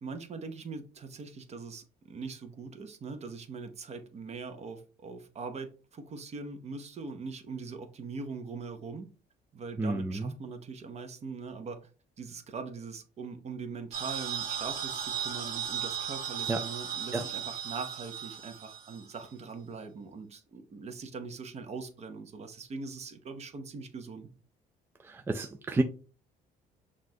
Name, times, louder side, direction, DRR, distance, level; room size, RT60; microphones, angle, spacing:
voice 1, 0.0-9.1 9.5-11.8 12.2-24.3, right 4 dB, 40° right, 0.8 m, -41 dB
voice 2, 9.8-10.3 16.5-16.6 17.1-17.2 25.0-25.8, right 2 dB, 15° right, 0.3 m, -30 dB
sound 1, 13.9-19.2, right 8 dB, 60° right, 1.1 m, -36 dB
5.9 x 2.5 x 2.7 m
cardioid pair, 110°, 17 cm